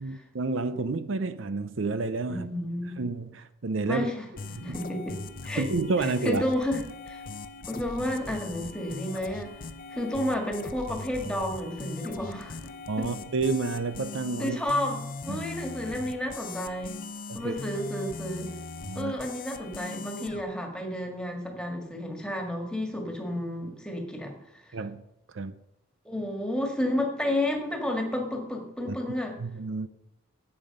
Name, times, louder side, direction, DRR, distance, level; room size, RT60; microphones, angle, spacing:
voice 1, 0.0-2.5 3.0-4.1 4.6-4.8 5.6-6.4 12.9-14.6 15.3-15.4 17.3-17.5 18.8-19.1 24.7-25.0 25.3-25.5 28.9-29.0 29.4-29.9, right 3 dB, 65° right, 0.6 m, -30 dB
voice 2, 2.3-3.0 3.9-4.3 4.6-5.7 6.0-6.8 7.1-7.2 7.7-9.5 9.9-12.6 13.0-13.1 14.4-17.0 17.3-18.5 19.0-24.7 26.1-29.4, left 1 dB, 5° left, 1.9 m, -31 dB
sound 1, 4.4-20.4, left 3 dB, 40° left, 0.6 m, -40 dB
11.0 x 8.8 x 5.4 m
head